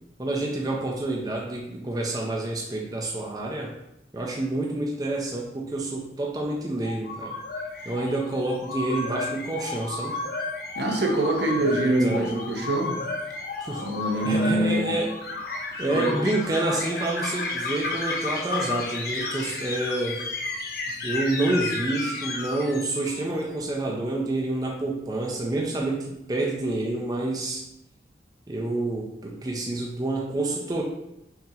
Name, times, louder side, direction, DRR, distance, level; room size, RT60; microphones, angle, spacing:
voice 1, 0.2-3.7 4.1-7.4 7.9-10.2 11.6-11.7 12.0-12.3 13.6-13.9 14.2-15.1 15.8-20.2 21.0-27.6 28.5-30.8, right 2 dB, 20° right, -1 dB, 0.4 m, -28 dB
sound 1, 6.8-23.3, left 3 dB, 55° left, 0.5 m, -32 dB
voice 2, 10.8-13.0 13.8-15.0 15.9-16.2, right 1 dB, 75° right, 1 dB, 0.7 m, -24 dB
5.6 x 2.9 x 2.4 m, 0.85 s
head